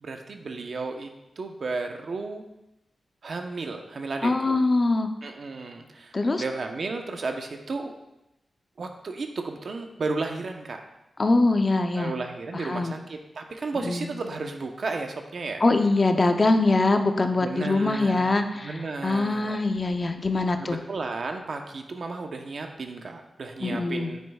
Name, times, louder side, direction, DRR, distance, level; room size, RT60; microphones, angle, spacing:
voice 1, 0.0-1.1 1.4-2.4 3.2-4.6 5.2-7.9 8.8-10.8 12.0-15.6 17.4-19.6 20.6-24.2, right 3 dB, 65° right, 4 dB, 0.9 m, -33 dB
voice 2, 4.2-5.1 6.1-6.4 11.2-12.1 12.5-12.9 13.8-14.1 15.6-20.8 23.6-24.1, left 2 dB, 40° left, 6 dB, 0.6 m, -23 dB
9.4 x 8.2 x 2.4 m, 0.93 s
cardioid pair, 80°, 0 cm